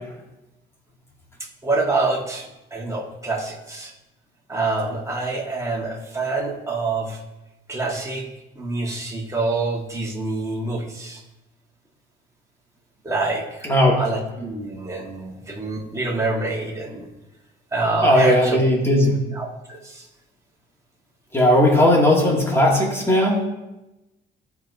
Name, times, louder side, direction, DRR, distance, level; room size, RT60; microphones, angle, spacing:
voice 1, 1.6-2.5 2.7-3.9 4.5-7.2 7.7-8.3 8.6-11.2 13.0-13.4 14.0-17.1 17.7-18.7 19.4-20.0, right 3 dB, 15° right, -2 dB, 1.6 m, -26 dB
voice 2, 13.6-14.0 18.0-19.2 21.3-23.5, left 1 dB, 10° left, -3 dB, 2.2 m, -17 dB
13.0 x 4.7 x 2.7 m, 0.98 s
cardioid pair, 90°, 20 cm